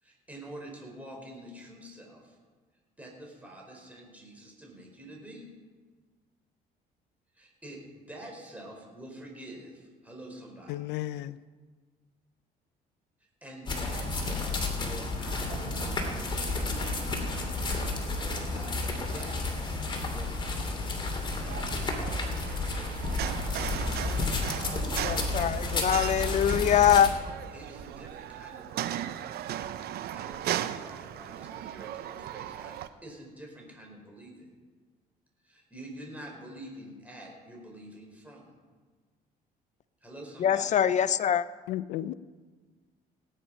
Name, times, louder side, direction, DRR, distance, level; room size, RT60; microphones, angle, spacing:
voice 1, 0.0-2.4 3.0-5.5 7.3-10.9 13.2-20.6 21.4-23.2 24.5-25.3 27.5-29.2 30.0-34.5 35.4-38.5 40.0-40.8, right 1 dB, 10° right, 4.5 m, -47 dB
voice 2, 10.7-11.4 41.7-42.1, left 14 dB, 90° left, 0.5 m, -33 dB
sound 1, 13.7-27.1, left 2 dB, 30° left, 2.8 m, -31 dB
sound 2, 15.5-21.5, right 4 dB, 40° right, 3.3 m, -48 dB
sound 3, 21.4-32.9, right 11 dB, 70° right, 0.7 m, -37 dB
voice 3, 25.1-27.1 40.4-41.4, left 9 dB, 45° left, 0.5 m, -23 dB
18.0 x 9.8 x 5.6 m
cardioid pair, 110°, 17 cm